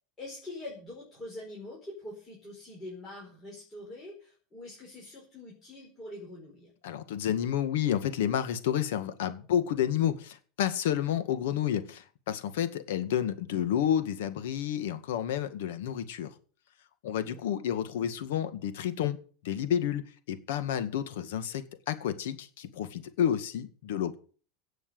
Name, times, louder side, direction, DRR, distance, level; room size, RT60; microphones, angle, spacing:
voice 1, 0.2-6.7 17.2-17.6, left 1 dB, 15° left, -4 dB, 4.7 m, -44 dB
voice 2, 6.8-16.3 17.0-19.2 19.4-20.0 20.3-24.2, left 10 dB, 75° left, 11 dB, 2.0 m, -30 dB
17.5 x 6.4 x 7.9 m, 0.42 s
supercardioid pair, 175°, 0 cm